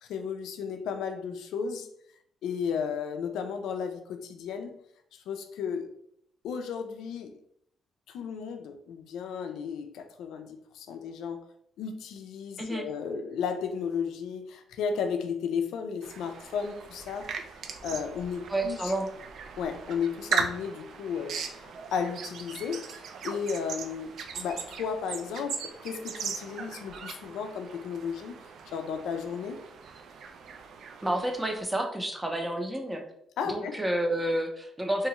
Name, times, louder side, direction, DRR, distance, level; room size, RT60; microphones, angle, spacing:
voice 1, 0.0-1.9 2.4-4.8 5.3-5.9 6.4-7.4 8.1-11.4 11.8-17.3 17.8-18.9 19.6-28.4 28.7-29.6 33.4-33.8, left 6 dB, 85° left, 6 dB, 0.3 m, -34 dB
sound 1, 16.0-31.6, right 5 dB, 70° right, 0.3 m, -38 dB
voice 2, 18.5-19.1 31.0-33.0 33.5-35.1, right 1 dB, 10° right, 4 dB, 0.5 m, -30 dB
2.8 x 2.3 x 2.9 m, 0.70 s
cardioid pair, 90°, 0 cm